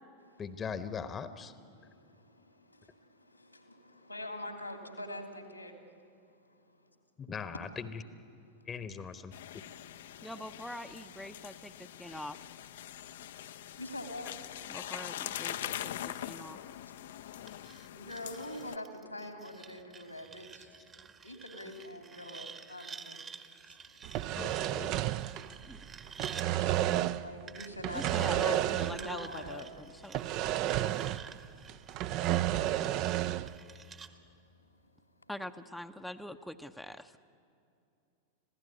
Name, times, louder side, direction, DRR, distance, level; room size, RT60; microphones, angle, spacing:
voice 1, 0.4-1.6 7.3-8.0 8.7-9.3 24.3-24.9, left 6 dB, 20° left, 12 dB, 1.0 m, -40 dB
voice 2, 3.4-5.7 13.8-14.3 17.9-20.7 21.2-23.2 27.2-29.7 33.3-33.4, left 1 dB, 90° left, 5 dB, 2.8 m, -43 dB
sound 1, 9.3-18.8, left 12 dB, 60° left, 0.6 m, -43 dB
voice 3, 10.2-12.4 14.7-16.6 25.7-25.8 27.9-29.7 30.0-30.3 35.3-37.2, left 1 dB, ahead, 6 dB, 0.7 m, -43 dB
sound 2, 17.5-26.5 27.5-34.1, right 5 dB, 25° right, 1.2 m, -50 dB
sound 3, 24.0-25.8 26.1-27.3 27.8-29.2 29.5-29.6 30.1-31.4 31.7-33.5, right 13 dB, 40° right, 0.6 m, -31 dB
26.5 x 16.5 x 9.5 m, 2.6 s
figure-of-eight pair, 90°, 0 cm